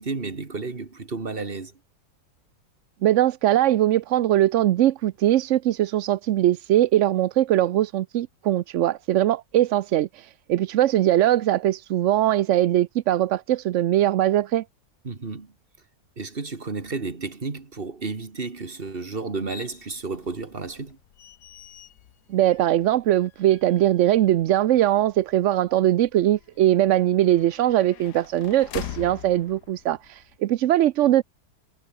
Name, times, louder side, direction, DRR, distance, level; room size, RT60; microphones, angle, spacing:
voice 1, 0.0-1.8 15.0-15.5 16.2-21.0, right 4 dB, 35° right, 2.3 m, -32 dB
voice 2, 3.0-14.6 22.3-31.2, right 13 dB, 65° right, 0.8 m, -21 dB
sound 1, 19.5-30.4, left 11 dB, 85° left, 1.5 m, -44 dB
omnidirectional pair, 1.7 m